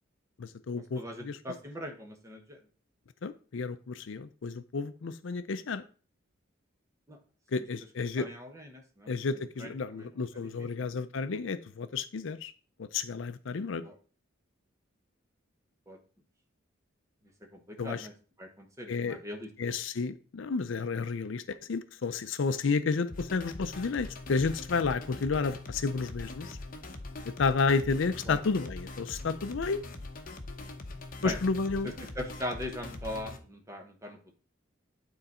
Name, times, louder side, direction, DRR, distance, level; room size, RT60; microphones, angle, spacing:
voice 1, 0.4-1.4 3.2-5.8 7.5-8.3 9.1-12.5 12.8-13.8 17.8-18.1 18.9-19.2 19.6-26.6 27.2-29.8 31.2-31.9, left 4 dB, 65° left, 0.5 m, -31 dB
voice 2, 1.0-2.6 7.1-7.2 8.2-9.1 9.6-10.1 10.6-10.9 13.8-14.0 15.9-16.0 17.5-18.1 18.4-19.8 28.3-28.4 31.2-31.4 32.1-34.3, left 1 dB, 15° right, 1.1 m, -40 dB
sound 1, 23.1-33.4, left 2 dB, 45° left, 0.9 m, -42 dB
9.2 x 3.9 x 4.3 m
head